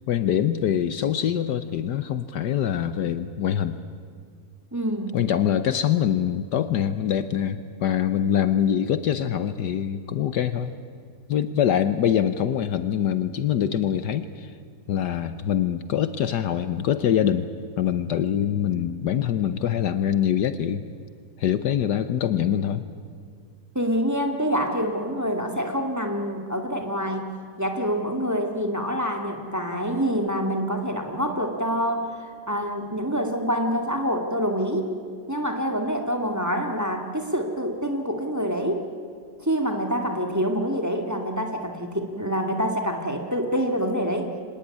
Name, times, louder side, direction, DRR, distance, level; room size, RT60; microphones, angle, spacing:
voice 1, 0.1-3.8 5.1-10.7 11.3-14.5 14.9-17.5 17.8-20.8 21.4-22.8, left 9 dB, 70° left, 12 dB, 1.4 m, -24 dB
voice 2, 4.7-5.2 23.7-27.3 27.6-34.9 35.3-38.8 39.4-44.3, equal, 10° right, 3 dB, 2.1 m, -26 dB
25.0 x 19.0 x 9.7 m, 2.2 s
omnidirectional pair, 2.0 m